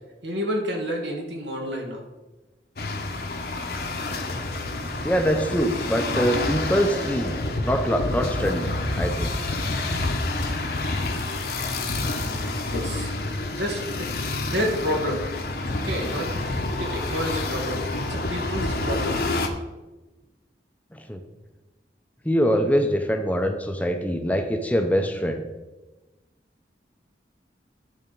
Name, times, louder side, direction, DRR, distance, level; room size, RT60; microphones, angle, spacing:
voice 1, 0.2-2.0 12.7-13.1 13.5-14.1 14.4-15.2 15.7-17.8 18.1-19.2, equal, 85° right, 1 dB, 1.8 m, -29 dB
sound 1, 2.8-19.5, left 2 dB, 60° left, 0.9 m, -28 dB
voice 2, 5.0-8.7 9.0-9.4 20.9-21.2 22.2-25.4, equal, 10° left, 5 dB, 0.6 m, -24 dB
11.0 x 4.2 x 5.3 m, 1.1 s
head